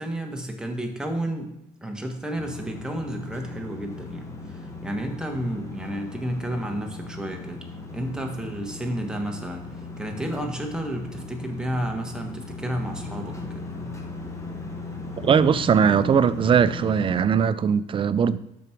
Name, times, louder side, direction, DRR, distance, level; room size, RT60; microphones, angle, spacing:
voice 1, 0.0-1.6 1.8-7.6 7.9-13.7, right 1 dB, 5° right, 1.3 m, -31 dB
sound 1, 2.4-17.2, left 3 dB, 15° left, 1.2 m, -37 dB
voice 2, 15.2-18.4, right 7 dB, 30° right, 0.4 m, -20 dB
7.1 x 6.0 x 4.5 m
cardioid pair, 110°, 17 cm